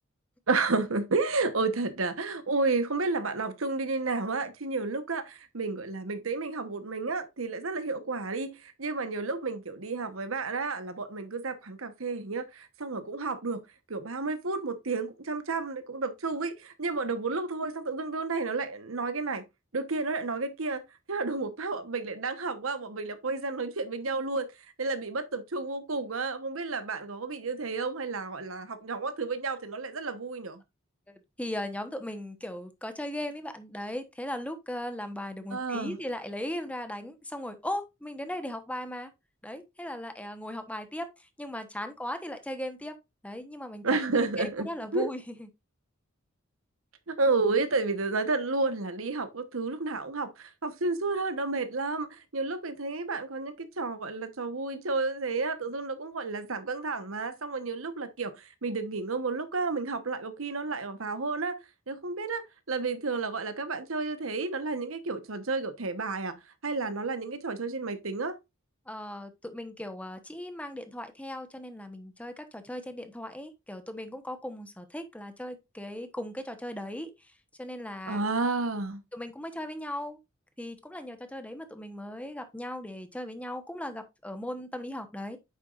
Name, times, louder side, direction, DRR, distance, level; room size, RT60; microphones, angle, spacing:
voice 1, 0.5-13.6 13.9-19.4 19.7-20.8 21.1-24.5 24.8-30.6 35.5-36.0 43.8-44.7 44.9-45.1 47.1-61.6 61.9-68.4 78.1-79.0, right 3 dB, 80° right, 1.1 m, -31 dB
voice 2, 31.1-39.1 39.4-43.0 43.2-45.5 68.9-77.3 77.6-78.3 79.1-80.2 80.6-85.4, left 1 dB, 5° left, 1.0 m, -38 dB
9.1 x 6.9 x 2.5 m
head